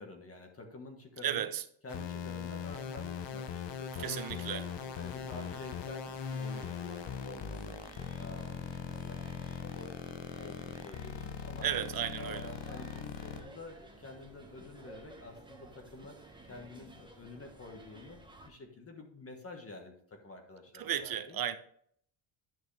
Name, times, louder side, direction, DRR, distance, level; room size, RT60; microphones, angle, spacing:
voice 1, 0.0-1.5 1.8-4.6 5.0-7.8 8.2-8.6 9.0-9.2 9.5-11.7 12.2-16.1 16.5-18.2 18.4-21.4, left 2 dB, 30° left, 1.5 m, -49 dB
voice 2, 1.2-1.6 4.0-4.7 11.6-12.5 20.7-21.6, right 10 dB, 45° right, 0.8 m, -34 dB
sound 1, 1.9-13.4, left 7 dB, 60° left, 1.0 m, -40 dB
sound 2, 4.5-18.5, right 2 dB, 10° right, 1.4 m, -54 dB
10.5 x 6.2 x 3.3 m
cardioid pair, 120°, 48 cm